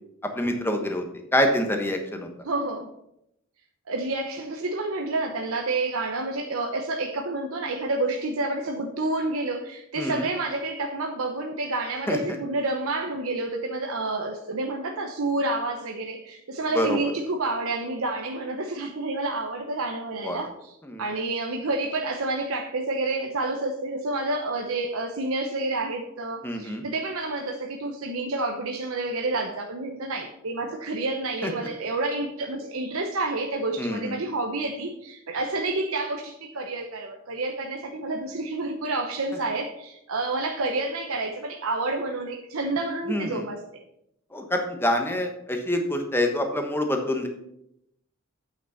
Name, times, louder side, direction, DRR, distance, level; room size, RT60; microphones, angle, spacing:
voice 1, 0.2-1.0 1.3-2.3 10.0-10.2 12.1-12.2 16.7-17.0 20.2-20.4 20.8-21.1 26.4-26.8 31.4-31.5 33.8-34.2 43.1-43.5 44.3-47.3, left 1 dB, 10° left, 4 dB, 1.1 m, -26 dB
voice 2, 2.4-2.9 3.9-20.7 21.0-43.8, right 2 dB, 80° right, 2 dB, 0.9 m, -29 dB
8.6 x 6.0 x 5.7 m, 0.80 s
head